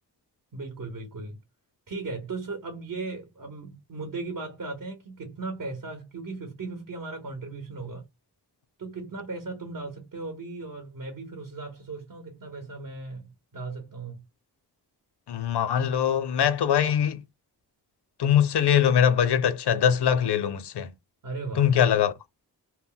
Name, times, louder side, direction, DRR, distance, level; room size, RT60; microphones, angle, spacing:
voice 1, 0.5-1.4 1.9-8.0 8.8-14.2 21.2-21.7, right 3 dB, 55° right, 0.9 m, -37 dB
voice 2, 15.3-17.2 18.2-20.9 21.6-22.1, left 9 dB, 75° left, 0.5 m, -22 dB
2.2 x 2.1 x 3.7 m
wide cardioid pair, 65°, 40 cm